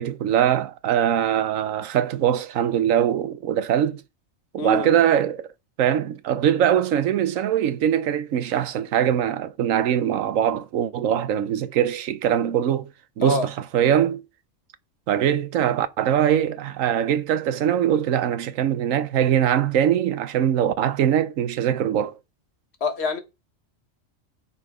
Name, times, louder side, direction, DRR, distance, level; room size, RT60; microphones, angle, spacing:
voice 1, 0.0-4.0 4.5-5.5 5.8-12.9 13.2-14.2 15.1-22.1, right 10 dB, 85° right, 1.1 m, -22 dB
voice 2, 4.6-4.9 13.2-13.5 22.8-23.2, left 4 dB, 55° left, 1.6 m, -25 dB
7.5 x 5.8 x 4.9 m
omnidirectional pair, 1.3 m